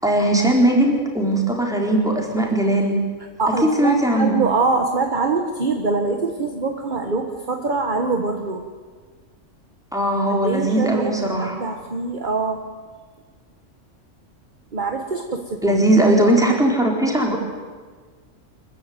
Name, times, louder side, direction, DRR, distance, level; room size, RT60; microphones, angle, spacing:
voice 1, 0.0-3.0 3.6-4.4 9.9-11.7 15.6-17.4, right 1 dB, ahead, 0 dB, 4.0 m, -19 dB
voice 2, 3.4-8.6 10.3-12.6 14.7-15.8, right 3 dB, 35° right, 5 dB, 1.5 m, -24 dB
25.0 x 14.5 x 9.7 m, 1.5 s
omnidirectional pair, 1.4 m